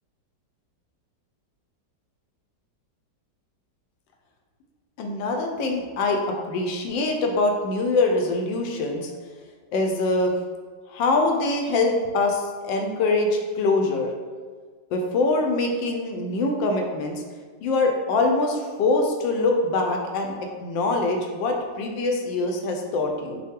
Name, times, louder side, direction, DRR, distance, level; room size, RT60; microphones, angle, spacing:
voice 1, 5.0-6.2 6.5-9.1 9.7-10.3 10.9-14.1 14.9-17.2 17.6-20.3 20.6-23.4, left 2 dB, 85° left, 2 dB, 1.3 m, -24 dB
5.4 x 2.2 x 3.6 m, 1.5 s
omnidirectional pair, 2.0 m